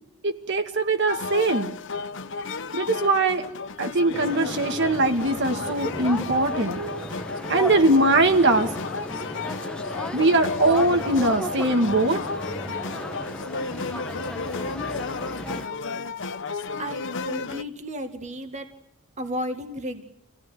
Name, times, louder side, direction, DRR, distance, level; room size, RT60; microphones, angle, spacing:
voice 1, 0.2-1.7 2.7-3.5 3.8-7.1 7.5-8.7 10.1-12.2, right 2 dB, 55° right, 5 dB, 2.2 m, -21 dB
sound 1, 1.1-17.6, left 4 dB, 60° left, 1.1 m, -33 dB
sound 2, 4.1-15.7, equal, 5° left, 1.2 m, -35 dB
voice 2, 16.8-18.7 19.2-20.0, equal, 35° right, 6 dB, 2.0 m, -33 dB
28.0 x 17.5 x 9.6 m, 0.83 s
head